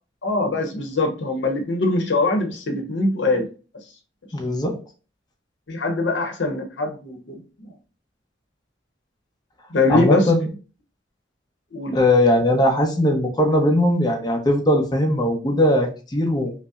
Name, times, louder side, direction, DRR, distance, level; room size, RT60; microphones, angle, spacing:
voice 1, 0.2-3.5 5.7-7.7 9.7-10.3 11.7-12.0, left 2 dB, 85° left, 0.8 m, -22 dB
voice 2, 4.3-4.8 9.9-10.5 11.9-16.5, left 1 dB, 20° left, 0.7 m, -19 dB
5.3 x 2.0 x 2.4 m
head